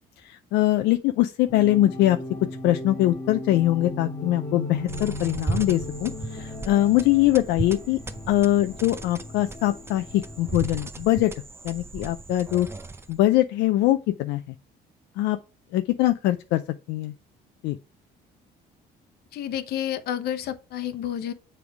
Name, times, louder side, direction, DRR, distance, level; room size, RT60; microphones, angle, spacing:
voice 1, 0.2-2.2 2.6-8.0 8.3-11.3 11.6-12.7 13.1-14.5 15.2-15.4 15.7-16.6 16.9-17.1 17.6-17.8, left 15 dB, 85° left, 0.4 m, -22 dB
sound 1, 1.5-10.6, left 2 dB, 20° left, 1.4 m, -37 dB
sound 2, 4.9-13.3, right 3 dB, 15° right, 0.6 m, -36 dB
voice 2, 19.3-21.3, left 10 dB, 70° left, 0.9 m, -30 dB
7.2 x 3.4 x 4.6 m
cardioid pair, 110°, 17 cm